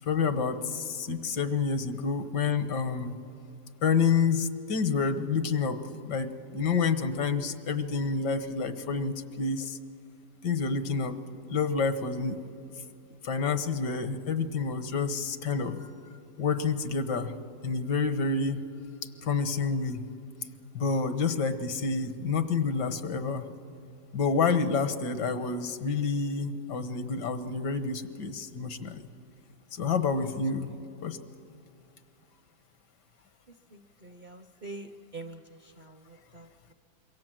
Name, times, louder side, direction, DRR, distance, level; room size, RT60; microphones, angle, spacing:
voice 1, 0.0-3.1 3.8-5.8 6.0-9.8 10.4-11.2 11.5-12.4 13.2-15.9 16.4-17.3 17.6-18.6 19.0-20.0 20.7-23.4 24.1-29.1 29.7-30.7 31.0-31.2, left 5 dB, 85° left, 10 dB, 1.8 m, -28 dB
voice 2, 33.7-36.7, right 2 dB, 45° right, 7 dB, 0.6 m, -45 dB
26.5 x 23.0 x 7.6 m, 2.5 s
omnidirectional pair, 1.8 m